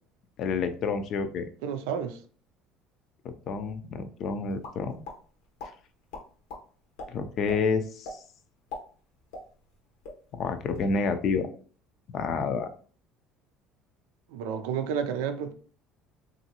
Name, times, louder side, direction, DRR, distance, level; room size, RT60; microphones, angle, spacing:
voice 1, 0.4-1.5 3.2-5.0 7.1-8.2 10.3-11.5 12.1-12.7, left 5 dB, 55° left, 0.4 m, -29 dB
voice 2, 1.6-2.2 14.3-15.5, right 7 dB, 90° right, 0.4 m, -31 dB
sound 1, 4.6-5.2 5.6-5.7 6.1-6.6 7.0-7.1 7.5-7.6 8.0-8.2 8.5-9.8 10.0-10.2 10.6-10.9, left 2 dB, 85° left, 0.9 m, -39 dB
3.0 x 2.5 x 2.8 m
supercardioid pair, 105°, 0 cm